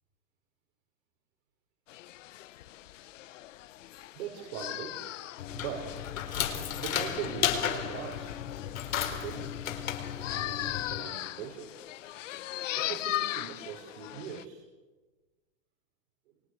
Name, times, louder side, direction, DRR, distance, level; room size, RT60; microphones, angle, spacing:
sound 1, 1.9-14.4, left 14 dB, 70° left, 1.1 m, -39 dB
voice 1, 4.1-5.0 5.5-5.9 6.8-8.4 8.9-9.6 10.3-11.7 12.7-14.6, right 8 dB, 60° right, 0 dB, 6.0 m, -40 dB
sound 2, 5.4-11.0, left 9 dB, 90° left, 4.5 m, -34 dB
28.5 x 24.0 x 8.4 m, 1.2 s
supercardioid pair, 165°, 39 cm